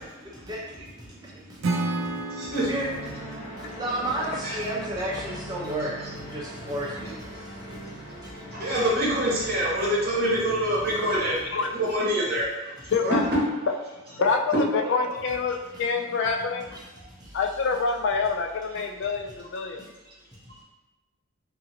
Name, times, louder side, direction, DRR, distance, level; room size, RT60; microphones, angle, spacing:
voice 1, 0.3-1.6 2.0-2.1 2.4-3.3 3.6-8.7 16.7-16.8 17.2-17.4 19.8-19.9, right 1 dB, 20° right, -5 dB, 0.6 m, -34 dB
voice 2, 1.2-1.6 2.1-2.7 3.3-3.8 4.4-4.6 7.7-7.8 8.3-11.4 11.7-12.4 12.8-13.2 14.8-14.9, right 1 dB, 50° right, -6 dB, 1.0 m, -26 dB
Acoustic guitar / Strum, 1.6-4.8, right 2 dB, 70° right, 0.4 m, -32 dB
sound 1, 2.5-11.4, equal, 75° left, 1.1 m, -41 dB
voice 3, 12.9-13.2 14.1-16.7 17.3-19.8, left 4 dB, 60° left, 4 dB, 0.3 m, -26 dB
2.7 x 2.6 x 2.7 m, 1.1 s
head